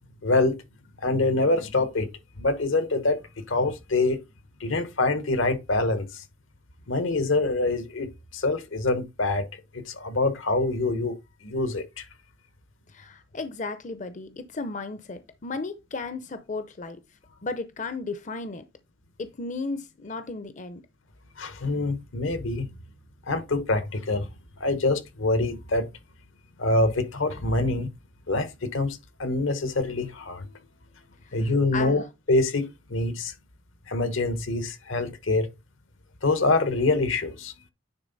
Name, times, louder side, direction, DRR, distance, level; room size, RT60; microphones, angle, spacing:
voice 1, 0.2-0.6 1.0-2.1 2.4-4.2 4.6-6.2 6.9-9.5 9.7-11.2 11.4-12.0 21.4-22.7 23.3-24.3 24.6-25.9 26.6-27.9 28.3-30.5 31.3-32.0 32.3-33.3 33.9-35.5 36.2-37.5, left 2 dB, 75° left, 1.1 m, -25 dB
voice 2, 12.9-17.0 17.4-18.6 19.2-20.8 31.2-32.0, left 3 dB, 40° left, 0.6 m, -34 dB
9.7 x 3.8 x 4.0 m
head